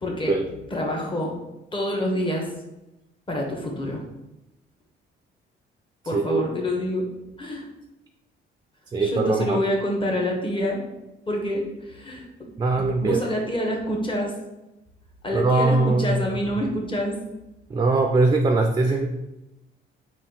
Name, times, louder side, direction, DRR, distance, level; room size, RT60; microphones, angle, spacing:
voice 1, 0.0-0.4 0.7-1.4 1.7-2.5 3.3-4.0 6.0-7.1 7.4-7.7 9.0-10.8 11.3-12.5 12.7-14.3 15.2-17.1 18.8-19.0, equal, 25° left, 0 dB, 1.0 m, -27 dB
voice 2, 6.1-6.4 8.9-9.6 12.6-13.2 15.3-16.2 17.7-19.1, right 3 dB, 20° right, 4 dB, 0.3 m, -21 dB
3.7 x 2.5 x 3.9 m, 0.96 s
cardioid pair, 90°, 20 cm